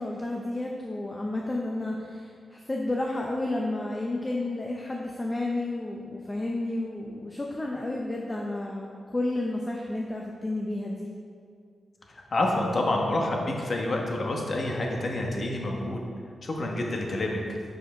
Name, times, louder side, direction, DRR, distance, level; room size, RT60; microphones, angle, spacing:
voice 1, 0.0-11.1, left 2 dB, 20° left, -1 dB, 0.6 m, -31 dB
voice 2, 12.3-16.0 16.4-17.6, left 1 dB, 45° left, 0 dB, 1.1 m, -28 dB
6.5 x 5.5 x 4.9 m, 2.3 s
wide cardioid pair, 110°, 0 cm